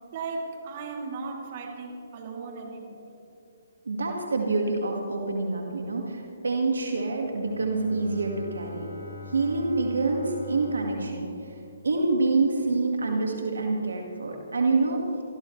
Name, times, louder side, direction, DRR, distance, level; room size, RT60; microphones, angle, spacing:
voice 1, 0.1-3.0, right 4 dB, 40° right, 0 dB, 3.0 m, -36 dB
voice 2, 3.9-8.9 9.3-11.3 11.8-15.0, right 3 dB, 80° right, 2 dB, 1.9 m, -26 dB
Bowed string instrument, 7.3-12.1, left 2 dB, 85° left, 2.7 m, -44 dB
24.0 x 14.0 x 3.3 m, 2.7 s
hypercardioid pair, 140°, 0 cm